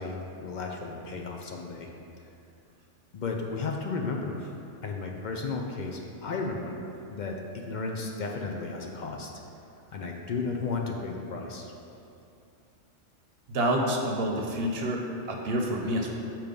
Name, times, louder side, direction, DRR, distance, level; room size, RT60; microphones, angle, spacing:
voice 1, 0.0-1.9 3.1-4.5 4.8-9.3 9.9-11.7, left 3 dB, 60° left, 1 dB, 0.5 m, -34 dB
voice 2, 13.5-16.1, right 1 dB, 60° right, 1 dB, 0.8 m, -28 dB
6.8 x 3.0 x 5.1 m, 2.7 s
omnidirectional pair, 1.3 m